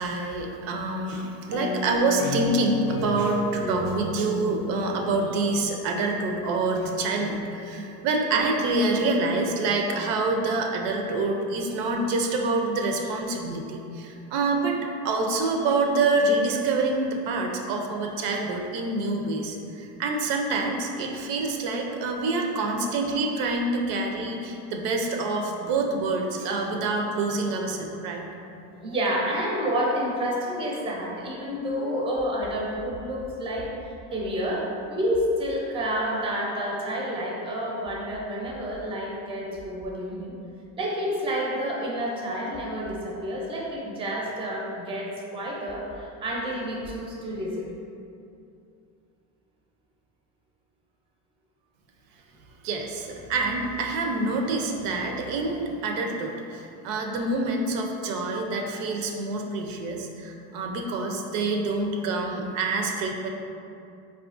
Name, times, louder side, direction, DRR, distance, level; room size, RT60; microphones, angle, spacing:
voice 1, 0.0-14.8 15.0-28.3 52.6-63.3, right 3 dB, 85° right, 2 dB, 0.5 m, -26 dB
sound 1, 1.5-6.2, left 2 dB, 60° left, 0.5 m, -33 dB
voice 2, 28.7-40.3 40.8-47.7, equal, 15° right, -3 dB, 0.5 m, -29 dB
4.3 x 2.4 x 2.4 m, 2.6 s
cardioid pair, 125°, 38 cm